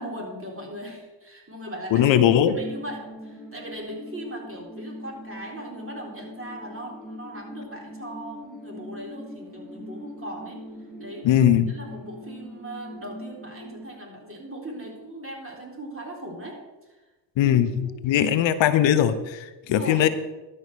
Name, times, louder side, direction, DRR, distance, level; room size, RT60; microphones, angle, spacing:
voice 1, 0.0-2.2 2.5-10.6 11.0-11.3 11.7-16.6 17.4-17.6 17.8-18.4 19.6-20.1, right 1 dB, 30° right, -1 dB, 3.9 m, -39 dB
voice 2, 1.9-2.6 11.2-11.7 17.4-20.1, left 10 dB, 80° left, 12 dB, 0.7 m, -20 dB
sound 1, 2.0-13.9, left 1 dB, ahead, 2.3 m, -41 dB
12.0 x 5.5 x 6.2 m, 1.1 s
supercardioid pair, 50°, 45 cm